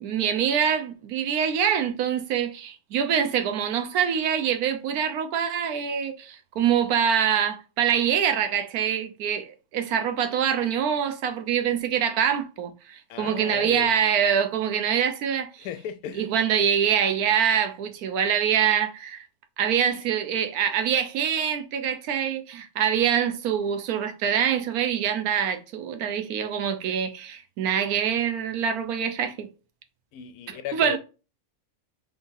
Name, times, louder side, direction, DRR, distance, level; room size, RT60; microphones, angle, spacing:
voice 1, 0.0-15.7 16.2-19.2 19.6-29.5 30.5-31.0, right 8 dB, 90° right, 1.2 m, -25 dB
voice 2, 13.1-13.9 15.6-16.3 30.1-31.0, left 10 dB, 90° left, 1.1 m, -35 dB
3.6 x 2.6 x 3.9 m
omnidirectional pair, 1.5 m